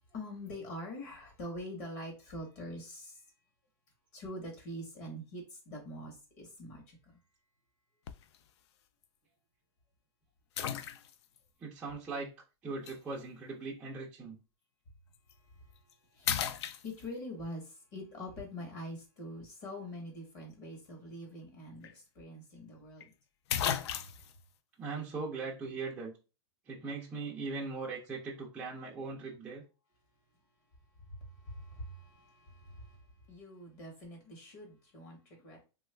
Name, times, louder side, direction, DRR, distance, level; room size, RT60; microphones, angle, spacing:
voice 1, 0.1-3.2 4.1-7.2 15.4-16.4 16.8-23.1 31.1-35.6, left 1 dB, 35° left, 0.9 m, -45 dB
sound 1, 8.1-8.4 9.0-9.1 10.6-11.4 12.9-13.0 15.1-15.3 15.8-15.9 16.2-17.3 21.4-21.5 21.8-21.9 23.0-23.1 23.5-24.4, left 9 dB, 70° left, 0.4 m, -35 dB
voice 2, 11.6-12.3 12.6-14.3 24.8-26.1 26.7-29.6, right 4 dB, 10° right, 0.4 m, -39 dB
3.1 x 2.3 x 3.2 m
supercardioid pair, 170°, 15 cm